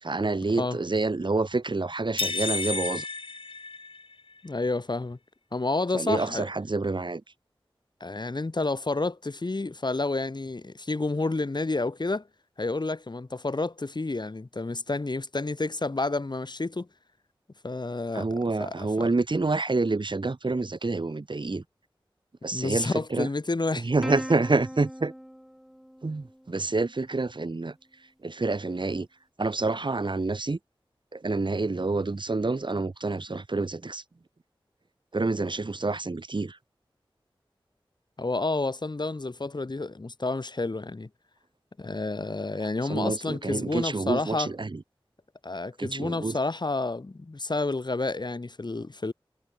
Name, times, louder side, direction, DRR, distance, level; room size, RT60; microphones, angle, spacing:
voice 1, 0.0-3.1 5.9-7.2 18.1-21.6 22.4-23.3 23.8-25.1 26.0-27.7 28.2-29.1 29.4-30.6 31.1-34.0 35.1-36.6 42.9-44.8 45.8-46.4, right 3 dB, 55° right, 3.3 m, -28 dB
sound 1, 2.2-4.3, left 4 dB, 70° left, 1.9 m, -31 dB
voice 2, 4.4-5.2 5.5-6.5 8.0-12.2 12.6-16.9 17.6-18.3 18.6-19.1 22.5-23.9 38.2-41.1 41.8-44.5 45.4-49.1, left 3 dB, 50° left, 3.9 m, -30 dB
Plucked string instrument, 24.0-26.8, equal, 5° right, 3.1 m, -39 dB
wide cardioid pair, 55°, 9 cm